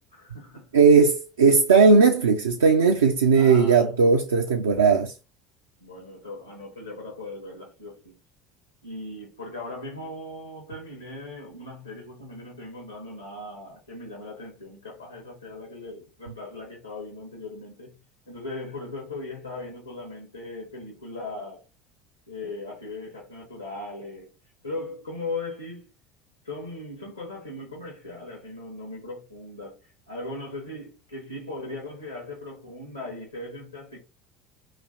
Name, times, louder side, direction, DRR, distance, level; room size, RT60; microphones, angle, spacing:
voice 1, 0.0-0.8 3.3-3.9 5.8-8.2 8.8-18.0 18.3-21.6 22.3-24.3 24.6-25.9 26.4-34.0, left 2 dB, 85° left, 0.9 m, -38 dB
voice 2, 0.7-5.1, right 5 dB, 75° right, 0.3 m, -18 dB
3.0 x 2.4 x 2.6 m
figure-of-eight pair, 65°, 0 cm